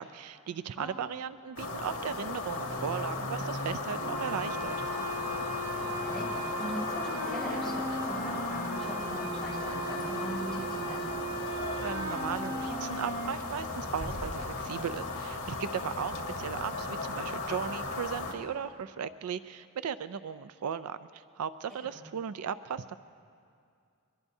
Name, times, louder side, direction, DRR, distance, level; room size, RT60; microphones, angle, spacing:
voice 1, 0.0-4.8 11.8-23.0, right 7 dB, 75° right, 13 dB, 0.4 m, -37 dB
sound 1, 1.6-18.3, left 3 dB, 75° left, 1.9 m, -36 dB
sound 2, 4.0-13.3, right 2 dB, 15° right, 5.4 m, -38 dB
voice 2, 6.0-11.1 21.7-22.0, equal, ahead, -7 dB, 4.5 m, -40 dB
sound 3, 14.0-16.1, equal, 35° left, 4.9 m, -44 dB
23.0 x 22.0 x 2.7 m, 2.4 s
head